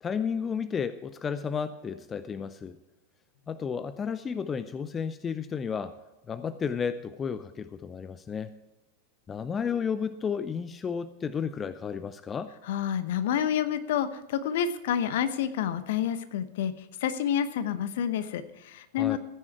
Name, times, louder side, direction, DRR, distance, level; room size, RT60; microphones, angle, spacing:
voice 1, 0.0-2.8 3.5-5.9 6.3-8.5 9.3-12.5 19.0-19.2, left 6 dB, 20° left, 13 dB, 0.6 m, -32 dB
voice 2, 12.7-16.7 17.0-19.2, left 9 dB, 55° left, 12 dB, 1.0 m, -28 dB
15.0 x 9.8 x 4.7 m, 1.0 s
figure-of-eight pair, 90°, 0 cm